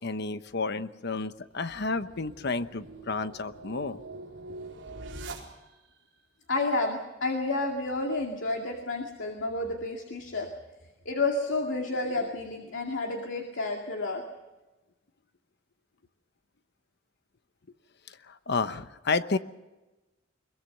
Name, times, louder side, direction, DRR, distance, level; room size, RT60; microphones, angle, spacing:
voice 1, 0.0-4.0 18.3-19.4, left 3 dB, 60° left, 12 dB, 1.0 m, -31 dB
sound 1, 1.4-6.0, right 2 dB, 70° right, 4.4 m, -44 dB
voice 2, 6.5-10.5 11.1-14.2, left 2 dB, 85° left, 1 dB, 2.3 m, -30 dB
22.0 x 22.0 x 6.7 m, 1.1 s
head